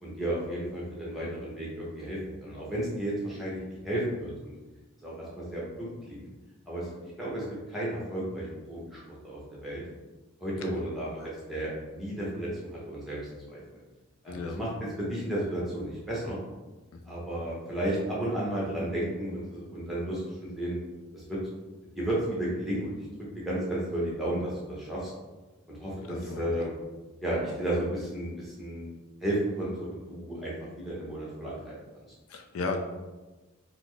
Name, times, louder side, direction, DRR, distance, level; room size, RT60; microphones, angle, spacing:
voice 1, 0.0-4.5 5.0-6.2 6.7-9.8 10.4-13.2 13.5-13.6 14.2-16.4 17.0-20.8 21.1-21.4 22.0-23.1 23.4-25.1 25.7-26.7 27.2-28.9 29.2-31.8, right 1 dB, ahead, -7 dB, 0.8 m, -33 dB
voice 2, 14.3-14.6 16.9-17.2 26.1-26.5 32.3-32.8, left 3 dB, 85° left, 5 dB, 0.4 m, -35 dB
4.0 x 2.0 x 3.2 m, 1.2 s
head